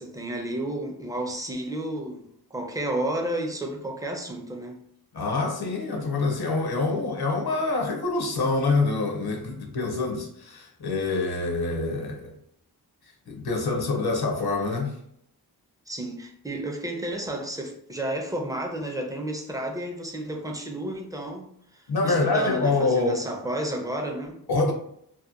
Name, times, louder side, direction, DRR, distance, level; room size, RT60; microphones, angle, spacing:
voice 1, 0.0-2.2 2.5-4.8 15.9-24.4, right 1 dB, 10° right, 0.4 m, -32 dB
voice 2, 5.1-12.3 13.3-14.9 21.9-23.2 24.5-24.7, left 3 dB, 75° left, 0.7 m, -26 dB
2.7 x 2.1 x 2.4 m
wide cardioid pair, 65°, 39 cm